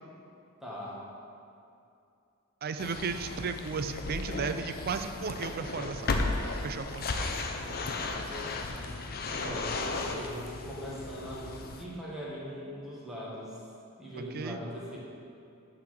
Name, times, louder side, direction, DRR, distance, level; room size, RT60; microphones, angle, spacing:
voice 1, 0.6-1.0 7.5-8.4 9.4-13.6 14.0-15.0, equal, ahead, -7 dB, 1.5 m, -41 dB
voice 2, 2.6-6.2 6.6-7.1 9.3-9.6 14.3-14.6, right 5 dB, 45° right, 9 dB, 0.4 m, -35 dB
sound 1, 2.8-11.8, left 3 dB, 45° left, 0.6 m, -35 dB
8.5 x 4.0 x 6.6 m, 2.6 s
head